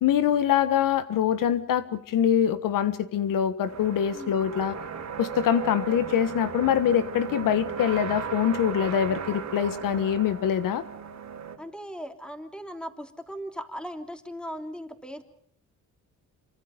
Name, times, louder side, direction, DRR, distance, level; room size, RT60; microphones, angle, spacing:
voice 1, 0.0-4.7 5.2-10.8, left 9 dB, 85° left, 12 dB, 1.4 m, -24 dB
sound 1, 3.6-11.6, right 6 dB, 60° right, 3.2 m, -36 dB
voice 2, 11.6-15.2, equal, 5° left, 6 dB, 3.2 m, -38 dB
27.5 x 24.5 x 5.3 m, 0.68 s
cardioid pair, 85°, 32 cm